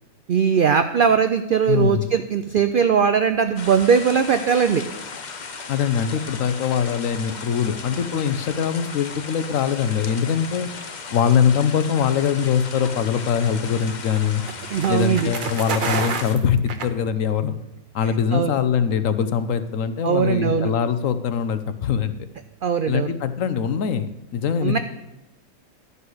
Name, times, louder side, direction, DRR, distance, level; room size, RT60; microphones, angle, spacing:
voice 1, 0.3-4.8 14.7-15.3 18.3-18.5 20.0-20.7 22.6-23.1 24.6-24.8, right 7 dB, 80° right, 9 dB, 0.4 m, -20 dB
voice 2, 1.7-2.1 5.7-10.7 11.1-14.4 14.9-17.6 17.9-22.1 22.9-24.8, left 7 dB, 65° left, 12 dB, 1.0 m, -22 dB
sound 1, 3.6-16.4, left 5 dB, 40° left, 0.7 m, -36 dB
sound 2, 13.1-17.5, right 5 dB, 45° right, 0.7 m, -30 dB
11.5 x 5.5 x 7.8 m, 0.89 s
omnidirectional pair, 1.5 m